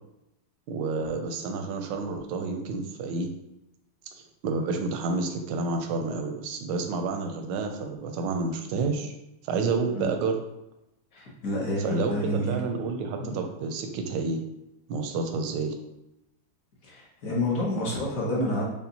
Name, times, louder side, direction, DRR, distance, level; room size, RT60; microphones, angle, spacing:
voice 1, 0.7-3.3 4.4-9.1 9.4-10.3 11.8-14.4 14.9-15.7, right 4 dB, 75° right, 4 dB, 1.1 m, -29 dB
voice 2, 11.1-12.6 13.2-13.4 16.8-18.6, left 1 dB, 50° left, -4 dB, 1.1 m, -29 dB
5.2 x 2.4 x 2.7 m, 0.90 s
omnidirectional pair, 2.4 m